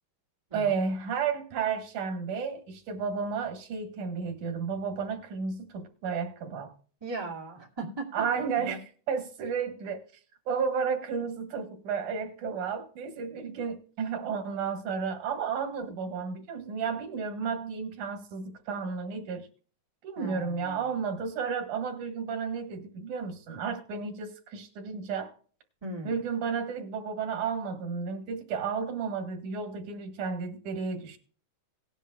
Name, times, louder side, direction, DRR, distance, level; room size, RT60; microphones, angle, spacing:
voice 1, 0.5-6.7 8.1-8.8 9.1-10.0 10.5-19.5 20.0-25.3 26.0-31.2, right 6 dB, 85° right, 2.9 m, -32 dB
voice 2, 7.0-8.3 8.6-8.8 20.2-20.9 25.8-26.2, right 2 dB, 10° right, 1.8 m, -38 dB
18.0 x 10.0 x 2.3 m
omnidirectional pair, 3.4 m